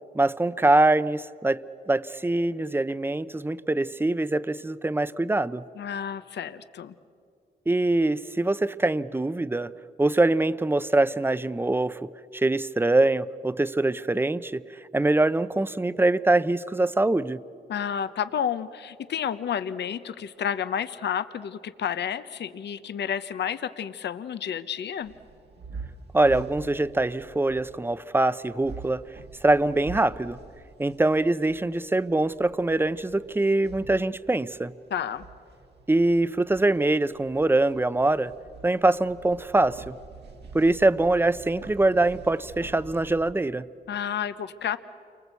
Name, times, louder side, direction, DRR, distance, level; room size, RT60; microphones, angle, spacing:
voice 1, 0.1-5.6 7.7-9.7 10.0-14.6 14.9-17.4 26.1-29.0 29.4-30.4 30.8-34.7 35.9-38.3 38.6-40.0 40.5-43.7, right 2 dB, 10° right, 15 dB, 0.6 m, -23 dB
voice 2, 5.8-6.9 17.7-25.1 34.9-35.3 43.9-44.8, left 8 dB, 80° left, 13 dB, 0.8 m, -30 dB
sound 1, 25.0-43.3, right 4 dB, 75° right, 1.9 m, -46 dB
29.0 x 24.0 x 8.2 m, 2.5 s
cardioid pair, 95°, 18 cm